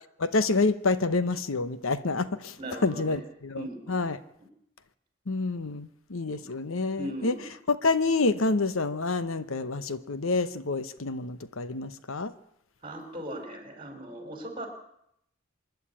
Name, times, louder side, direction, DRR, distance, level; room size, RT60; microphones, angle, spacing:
voice 1, 0.2-2.6 2.8-4.2 5.3-7.4 7.7-12.3, left 3 dB, 75° left, 14 dB, 0.9 m, -28 dB
voice 2, 2.6-3.2 3.6-4.0 6.3-6.4 7.0-7.4 12.8-14.7, right 1 dB, 25° right, 4 dB, 5.3 m, -38 dB
25.5 x 11.0 x 9.9 m, 0.75 s
head